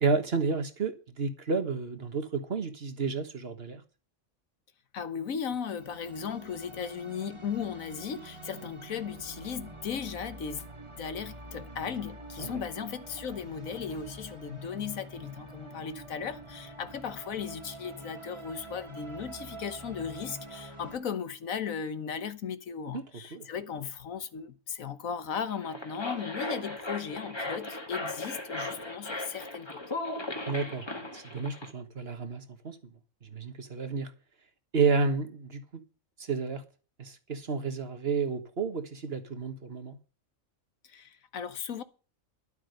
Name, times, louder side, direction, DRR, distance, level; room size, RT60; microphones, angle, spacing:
voice 1, 0.0-3.8 12.4-12.6 22.9-23.0 23.3-23.5 30.5-30.9 31.1-32.8 33.2-34.1 34.7-35.8 36.2-36.6 37.0-40.0, right 4 dB, 50° right, 1.5 m, -31 dB
voice 2, 4.9-10.6 11.0-29.8 40.8-41.8, left 7 dB, 85° left, 1.6 m, -36 dB
sound 1, 5.8-21.0, right 2 dB, 20° right, 1.7 m, -46 dB
sound 2, 25.5-31.7, left 2 dB, 20° left, 1.6 m, -37 dB
11.5 x 8.2 x 6.7 m
omnidirectional pair, 1.4 m